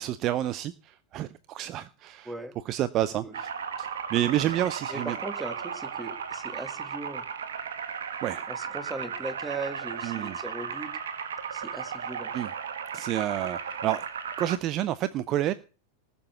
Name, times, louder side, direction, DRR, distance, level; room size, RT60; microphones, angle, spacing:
voice 1, 0.0-2.3 2.7-3.5 3.8-5.2 8.2-8.4 10.0-10.3 12.3-12.5 12.9-14.0 14.4-15.5, right 13 dB, 35° right, 0.6 m, -29 dB
voice 2, 2.3-2.6 3.2-3.4 4.9-7.2 8.5-10.9 11.5-12.3, right 2 dB, 10° right, 2.0 m, -38 dB
sound 1, 3.3-14.6, right 7 dB, 65° right, 1.6 m, -35 dB
19.0 x 7.0 x 6.8 m
figure-of-eight pair, 90°, 0 cm